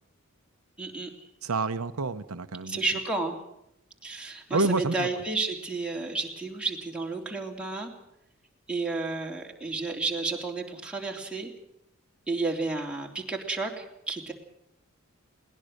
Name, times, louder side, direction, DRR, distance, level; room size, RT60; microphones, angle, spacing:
voice 1, 0.8-1.1 2.6-3.4 4.0-7.9 8.7-11.5 12.3-14.3, right 3 dB, 5° right, -1 dB, 3.2 m, -31 dB
voice 2, 1.4-2.8 4.5-5.1, right 3 dB, 85° right, 9 dB, 0.9 m, -28 dB
21.0 x 19.0 x 6.6 m, 0.79 s
head